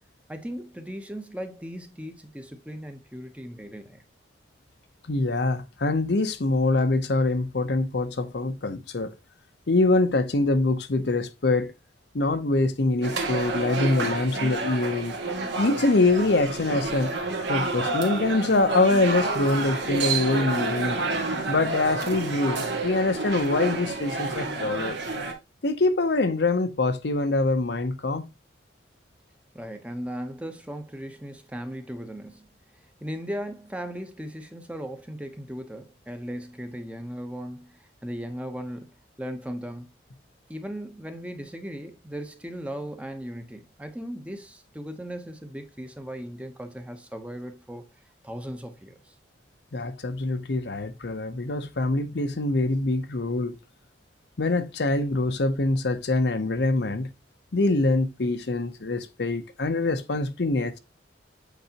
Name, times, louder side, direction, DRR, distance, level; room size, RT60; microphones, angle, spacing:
voice 1, 0.3-4.0 29.5-32.5 33.0-38.9 39.2-39.9 40.5-47.9 48.2-49.1, equal, 5° right, 0.8 m, -37 dB
voice 2, 5.1-9.1 9.7-11.7 12.1-15.1 15.6-17.1 17.5-21.0 21.5-25.0 25.6-28.3 49.7-53.6 54.4-57.1 57.5-60.8, left 2 dB, 65° left, 0.7 m, -24 dB
sound 1, 13.0-25.3, right 3 dB, 75° right, 1.7 m, -29 dB
8.2 x 4.6 x 2.9 m
head